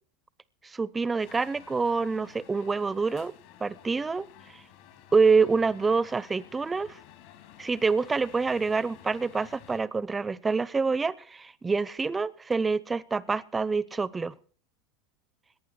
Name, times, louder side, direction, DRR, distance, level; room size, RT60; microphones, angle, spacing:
voice 1, 0.7-3.3 3.6-4.3 5.1-7.0 7.6-14.3, right 4 dB, 15° right, 0.5 m, -26 dB
sound 1, 1.2-9.8, left 10 dB, 65° left, 2.6 m, -52 dB
18.5 x 11.0 x 4.7 m
supercardioid pair, 130°, 0 cm